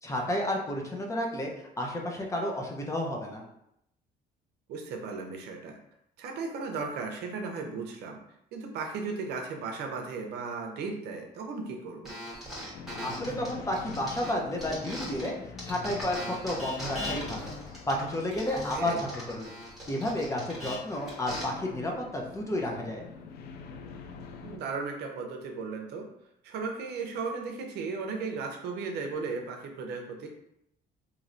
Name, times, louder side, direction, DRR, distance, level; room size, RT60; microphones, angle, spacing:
voice 1, 0.0-3.4 13.0-15.3 15.6-17.5 17.9-19.5 19.9-23.0, left 1 dB, 15° left, -1 dB, 0.6 m, -31 dB
voice 2, 4.7-5.8 6.2-8.2 8.5-12.1 18.7-19.0 24.4-26.1 26.4-30.3, right 4 dB, 75° right, 3 dB, 0.6 m, -36 dB
sound 1, 12.0-15.3 15.6-21.4, equal, ahead, 1.2 m, -40 dB
sound 2, 12.7-24.6, left 5 dB, 70° left, 0.4 m, -45 dB
3.1 x 2.7 x 2.5 m, 0.78 s
cardioid pair, 110°, 17 cm